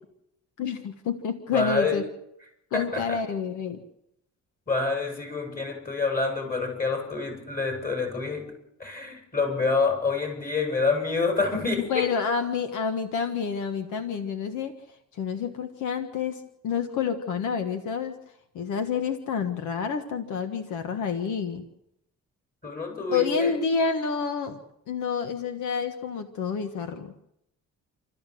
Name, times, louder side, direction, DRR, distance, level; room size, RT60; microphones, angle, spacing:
voice 1, 0.6-2.0 2.7-3.8 11.9-14.8 15.2-18.2 18.5-21.6 23.1-24.6 24.9-27.1, left 6 dB, 80° left, 8 dB, 1.6 m, -28 dB
voice 2, 1.5-2.0 2.7-3.2 4.7-8.5 8.8-12.1 22.6-23.5, left 4 dB, 30° left, 3 dB, 7.4 m, -27 dB
28.0 x 13.5 x 7.8 m, 0.80 s
cardioid pair, 90°, 30 cm